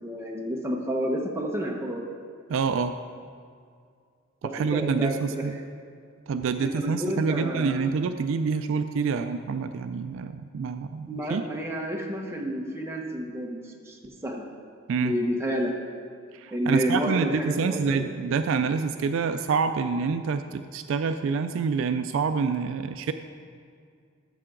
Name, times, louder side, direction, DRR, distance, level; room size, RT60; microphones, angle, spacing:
voice 1, 0.0-2.1 4.4-5.5 6.6-7.9 11.1-14.4 15.0-15.7 16.5-18.1, equal, 10° right, -1 dB, 0.9 m, -30 dB
voice 2, 2.5-2.9 4.4-5.6 6.3-11.4 14.9-15.1 16.3-23.1, right 5 dB, 60° right, 9 dB, 0.3 m, -27 dB
13.0 x 6.7 x 3.8 m, 2.3 s
head